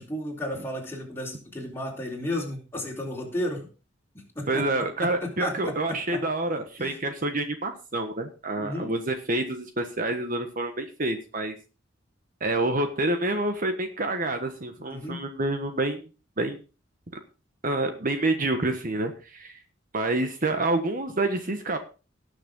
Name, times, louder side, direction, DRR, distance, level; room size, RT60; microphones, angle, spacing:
voice 1, 0.0-3.7 4.1-4.6 5.2-6.2 6.8-7.0 8.6-8.9 14.9-15.2, left 1 dB, 10° left, -1 dB, 3.8 m, -33 dB
voice 2, 4.5-11.5 12.4-16.1 16.4-16.6 17.6-19.6 19.9-21.8, right 2 dB, 45° right, 6 dB, 1.3 m, -28 dB
18.5 x 6.7 x 3.8 m, 0.33 s
head